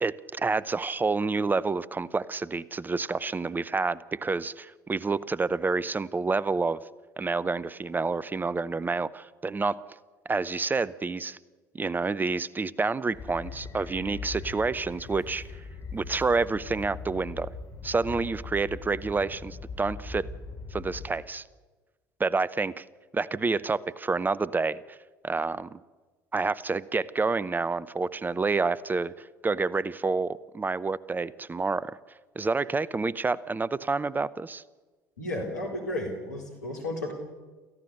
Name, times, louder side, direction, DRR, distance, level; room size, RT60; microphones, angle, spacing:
voice 1, 0.0-6.8 7.2-9.8 10.3-11.4 11.7-15.4 15.9-17.5 17.8-20.3 20.7-21.4 22.2-22.9 23.1-25.0 25.2-25.8 26.3-32.0 32.4-34.6, right 4 dB, 20° right, 19 dB, 0.7 m, -28 dB
sound 1, 13.1-21.1, left 4 dB, 45° left, 5.4 m, -40 dB
voice 2, 35.2-37.1, left 1 dB, 85° left, 1 dB, 3.8 m, -33 dB
27.5 x 15.5 x 6.7 m, 1.3 s
figure-of-eight pair, 60°, 9 cm